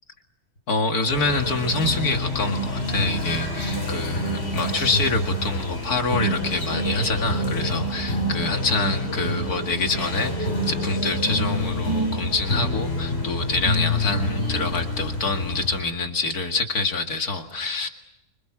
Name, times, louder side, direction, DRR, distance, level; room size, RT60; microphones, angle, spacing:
voice 1, 0.7-17.9, left 3 dB, 75° left, 4 dB, 2.6 m, -26 dB
sound 1, 1.1-15.8, equal, 40° left, 4.8 m, -27 dB
29.0 x 26.5 x 6.2 m, 0.84 s
omnidirectional pair, 1.6 m